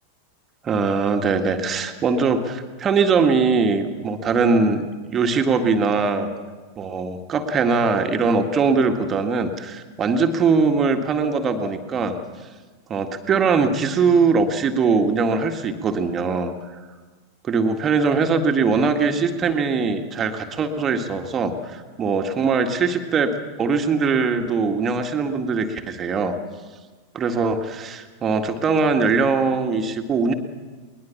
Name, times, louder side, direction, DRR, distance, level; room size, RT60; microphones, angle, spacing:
voice 1, 0.6-4.8 5.1-6.3 6.8-12.1 12.9-16.5 17.4-23.3 23.6-26.4 27.1-30.3, right 4 dB, 25° right, 6 dB, 1.9 m, -21 dB
22.0 x 20.5 x 7.2 m, 1.4 s
figure-of-eight pair, 90°, 0 cm